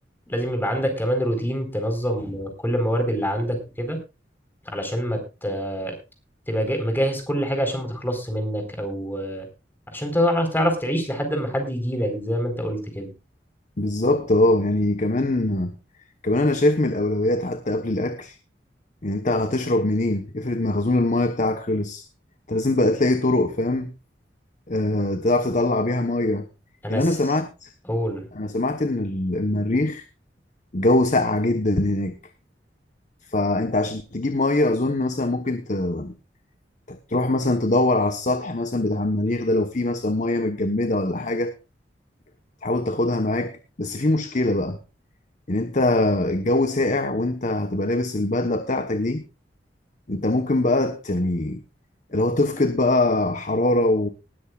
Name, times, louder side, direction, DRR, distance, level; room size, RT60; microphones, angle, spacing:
voice 1, 0.3-4.0 4.7-6.0 6.5-9.5 9.9-13.1 26.8-27.1 27.9-28.3, equal, 10° left, 4.2 m, -25 dB
voice 2, 13.8-15.7 16.2-18.4 19.0-22.0 22.5-23.9 24.7-26.5 26.9-27.7 28.3-30.0 30.7-32.2 33.3-36.1 36.9-41.5 42.6-44.8 45.5-49.2 50.1-51.6 52.1-54.1, left 2 dB, 45° left, 1.1 m, -22 dB
19.0 x 13.0 x 2.4 m
head